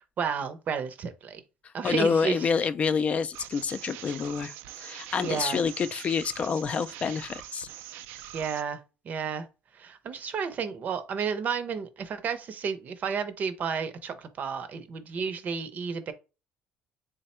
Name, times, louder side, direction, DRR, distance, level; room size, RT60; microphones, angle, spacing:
voice 1, 0.2-1.4 1.7-2.5 5.2-5.6 8.3-8.8 9.0-9.5 9.7-16.1, right 6 dB, 50° right, 0.6 m, -32 dB
voice 2, 1.8-7.7, left 6 dB, 40° left, 0.3 m, -28 dB
sound 1, 3.3-8.6, right 12 dB, 85° right, 0.3 m, -44 dB
3.5 x 2.1 x 4.2 m
cardioid pair, 110°, 4 cm